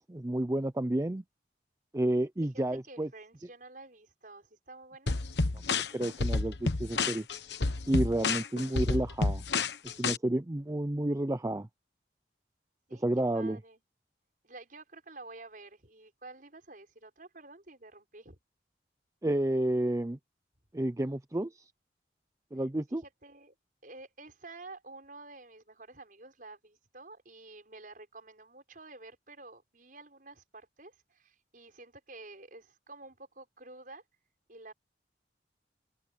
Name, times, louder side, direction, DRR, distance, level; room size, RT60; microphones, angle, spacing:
voice 1, 0.1-1.2 1.9-3.1 5.9-7.3 7.9-9.4 9.8-11.7 12.9-13.6 19.2-20.2 20.7-21.7 22.5-23.0, right 1 dB, 15° right, 0.5 m, -30 dB
voice 2, 2.5-5.8 12.9-13.8 14.4-18.4 22.9-23.5 23.8-34.0 34.5-34.7, right 2 dB, 50° right, 6.4 m, -50 dB
sound 1, 5.1-10.2, left 3 dB, 75° left, 1.2 m, -30 dB
open air
head